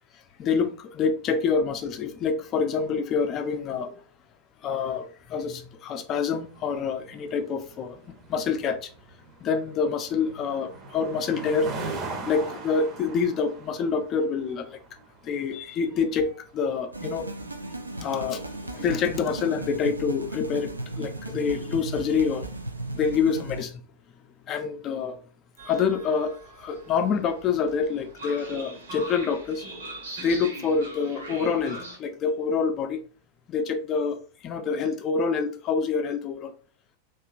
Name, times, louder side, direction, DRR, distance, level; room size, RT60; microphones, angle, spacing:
voice 1, 0.4-4.0 4.6-8.0 8.3-8.9 9.4-11.7 12.3-14.7 15.2-17.3 18.0-22.6 22.9-23.8 24.5-25.2 25.7-29.7 30.2-33.0 33.5-36.5, left 5 dB, 30° left, 0.4 m, -27 dB
sound 1, 6.1-19.6, right 3 dB, 30° right, 0.6 m, -41 dB
sound 2, 16.9-23.6, right 2 dB, 80° right, 0.3 m, -36 dB
Train, 25.6-32.0, right 1 dB, 65° right, 0.8 m, -41 dB
2.8 x 2.4 x 2.3 m
figure-of-eight pair, 90°, 0 cm